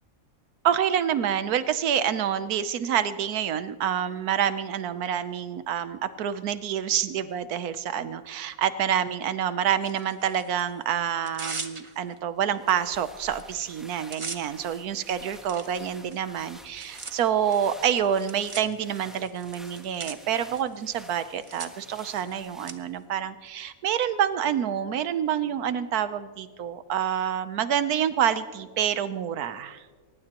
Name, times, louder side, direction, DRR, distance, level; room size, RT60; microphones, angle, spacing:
voice 1, 0.6-29.8, right 9 dB, 85° right, 12 dB, 1.3 m, -27 dB
Tearing, 9.8-10.6 11.1-12.2 12.7-12.8 13.1-13.4 13.7-22.7, right 4 dB, 30° right, 0.7 m, -42 dB
sound 1, 12.4-23.1, equal, ahead, 1.1 m, -51 dB
22.5 x 19.0 x 3.0 m, 1.5 s
omnidirectional pair, 1.6 m